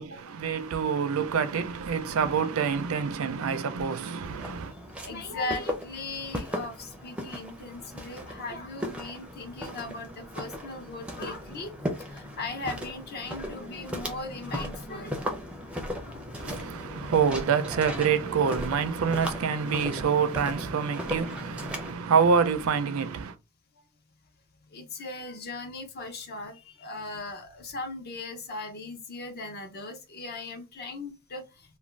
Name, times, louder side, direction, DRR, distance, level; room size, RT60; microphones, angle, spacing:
voice 1, 0.0-4.7 16.4-23.4, right 6 dB, 65° right, 0.4 m, -26 dB
Walk footsteps, 4.2-21.9, equal, 5° right, 0.5 m, -37 dB
voice 2, 5.0-11.7 12.0-15.4 16.0-16.2 24.7-31.4, left 2 dB, 45° left, 0.6 m, -38 dB
2.5 x 2.2 x 3.1 m
head